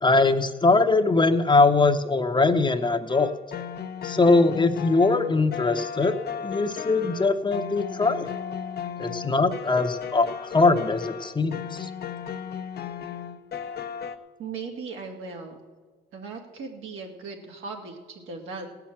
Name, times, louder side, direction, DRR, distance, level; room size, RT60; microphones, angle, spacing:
voice 1, 0.0-3.3 4.0-6.1 6.4-8.3 9.0-11.9, left 3 dB, 25° left, 8 dB, 0.9 m, -21 dB
sound 1, 3.1-14.2, left 8 dB, 55° left, 0.8 m, -35 dB
voice 2, 14.4-15.5 16.1-18.7, right 4 dB, 85° right, 1 dB, 2.3 m, -38 dB
17.0 x 5.9 x 8.7 m, 1.5 s
cardioid pair, 90°, 20 cm